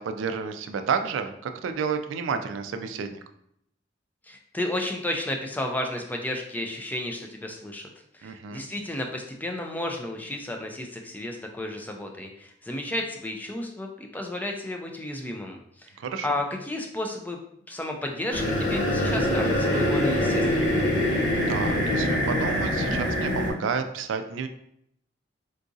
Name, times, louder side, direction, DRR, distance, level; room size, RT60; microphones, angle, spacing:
voice 1, 0.0-3.2 8.2-8.6 16.0-16.4 21.5-24.5, right 6 dB, 85° right, 7 dB, 0.3 m, -30 dB
voice 2, 4.2-7.9 8.1-17.4 17.7-20.7, left 1 dB, 10° left, 2 dB, 0.3 m, -32 dB
sound 1, 18.3-23.5, left 1 dB, 70° left, 1.3 m, -24 dB
3.8 x 2.4 x 2.5 m, 0.72 s
head